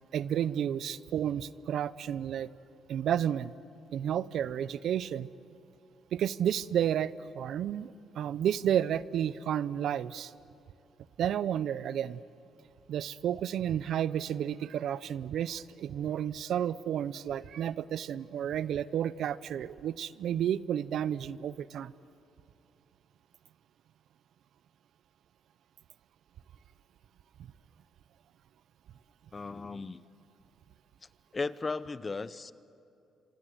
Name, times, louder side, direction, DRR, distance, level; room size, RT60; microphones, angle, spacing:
voice 1, 0.1-2.5 2.9-3.5 3.9-5.3 6.1-10.3 11.2-12.2 12.9-21.9, right 9 dB, 70° right, 18 dB, 0.6 m, -31 dB
voice 2, 29.3-30.0 31.3-32.5, left 3 dB, 30° left, 16 dB, 0.7 m, -36 dB
26.5 x 26.0 x 7.9 m, 2.7 s
cardioid pair, 90°, 0 cm